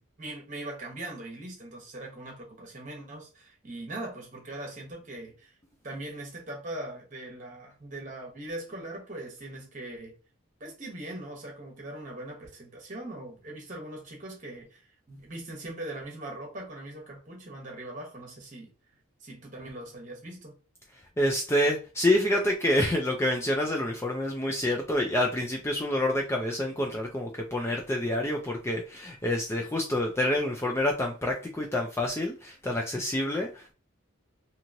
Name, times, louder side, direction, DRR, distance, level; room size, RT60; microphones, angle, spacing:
voice 1, 0.0-5.6 5.8-10.1 10.6-18.7 19.2-20.5, right 1 dB, 35° right, 1.1 m, -41 dB
voice 2, 21.2-33.7, left 1 dB, 10° left, 0.3 m, -27 dB
3.0 x 2.7 x 2.5 m
head